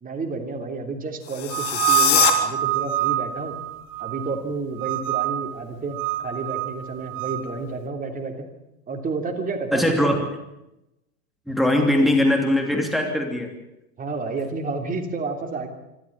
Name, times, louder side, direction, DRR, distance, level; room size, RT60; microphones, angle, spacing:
voice 1, 0.0-3.5 4.0-6.0 6.2-8.5 8.9-10.1 14.0-15.7, right 4 dB, 20° right, 3 dB, 3.1 m, -30 dB
sound 1, 1.2-2.3, left 12 dB, 55° left, 3.6 m, -22 dB
sound 2, 1.5-4.4 4.8-5.6 5.9-7.5, right 13 dB, 60° right, 1.7 m, -26 dB
voice 2, 9.7-10.2 11.5-13.5, left 1 dB, ahead, 2 dB, 3.0 m, -20 dB
25.5 x 13.0 x 8.7 m, 0.92 s
hypercardioid pair, 120°, 45 cm